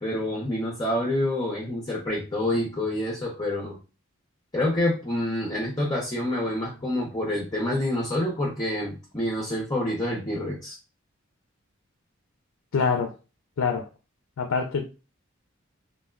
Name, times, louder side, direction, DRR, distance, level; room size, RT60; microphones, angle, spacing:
voice 1, 0.0-3.8 4.5-10.8, left 1 dB, 20° left, 0.6 m, -27 dB
voice 2, 12.7-13.1 13.6-13.9 14.4-14.8, left 5 dB, 80° left, 0.4 m, -25 dB
3.3 x 2.2 x 2.2 m
head